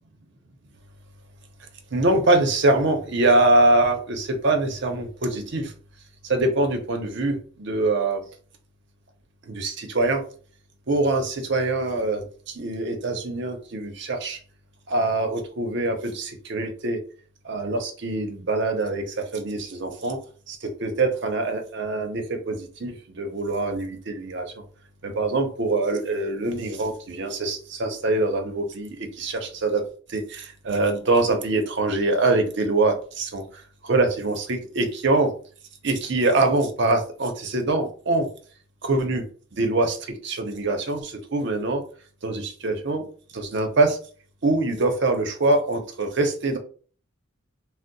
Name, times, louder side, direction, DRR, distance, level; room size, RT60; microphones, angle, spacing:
voice 1, 1.9-5.7 6.2-8.2 9.5-10.2 10.9-12.3 12.5-14.4 14.9-17.0 17.4-20.2 20.5-24.5 25.0-29.8 30.1-33.4 33.8-35.3 35.8-38.3 38.8-39.2 39.5-41.8 42.2-43.0 43.3-44.0 44.4-46.6, right 2 dB, 55° right, 5 dB, 0.6 m, -24 dB
2.6 x 2.0 x 3.9 m, 0.41 s
head